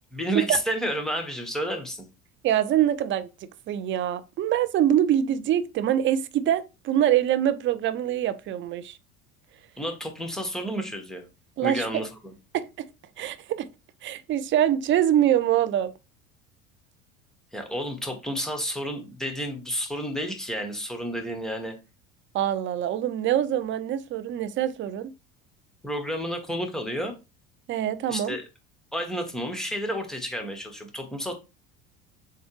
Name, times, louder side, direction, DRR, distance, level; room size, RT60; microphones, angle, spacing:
voice 1, 0.1-2.1 9.8-11.2 11.6-12.3 17.5-21.8 25.8-27.1 28.1-28.4 28.9-31.3, equal, ahead, 1.3 m, -31 dB
voice 2, 2.4-3.3 3.7-9.0 11.6-11.8 12.5-12.6 13.2-13.7 14.0-15.9 22.3-25.1 27.7-28.4, right 11 dB, 30° right, 0.5 m, -24 dB
6.9 x 2.3 x 3.2 m
figure-of-eight pair, 70°, 41 cm